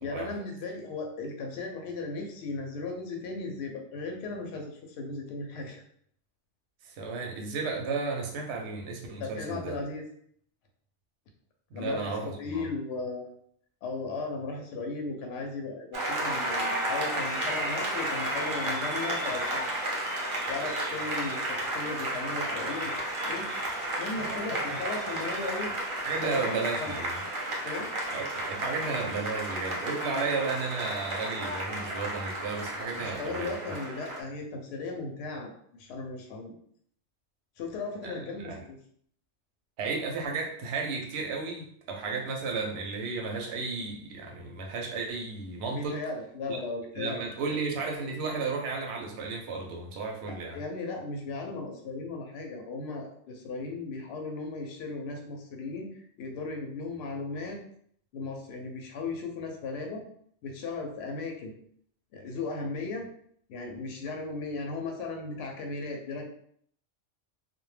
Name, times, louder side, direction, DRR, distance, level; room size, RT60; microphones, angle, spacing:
voice 1, 0.0-5.8 9.2-10.1 11.7-13.3 13.8-19.7 20.5-23.5 24.0-25.7 26.2-26.4 26.8-27.0 27.6-27.9 33.0-36.5 37.6-38.8 45.7-47.2 47.5-47.6 50.2-57.6 58.1-60.0 60.4-61.5 62.1-63.1 63.5-66.3, left 3 dB, 65° left, 2 dB, 0.8 m, -36 dB
voice 2, 6.8-9.8 11.7-12.7 24.2-24.8 26.0-27.2 28.1-33.5 38.0-38.6 39.8-46.0 46.5-46.6 47.0-50.6, right 4 dB, 70° right, 1 dB, 0.8 m, -33 dB
Applause, 15.9-34.2, right 1 dB, 40° right, 0.4 m, -32 dB
2.1 x 2.1 x 3.1 m, 0.64 s
omnidirectional pair, 1.2 m